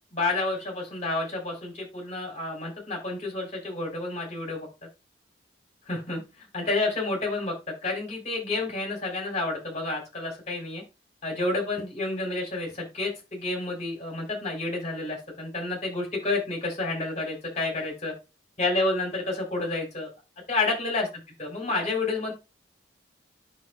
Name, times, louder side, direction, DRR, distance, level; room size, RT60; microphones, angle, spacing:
voice 1, 0.1-4.7 5.9-7.5 7.8-10.8 11.2-18.1 18.6-20.1 20.5-21.1 21.4-22.3, left 2 dB, 35° left, 1 dB, 3.8 m, -29 dB
9.3 x 6.4 x 2.4 m, 0.26 s
head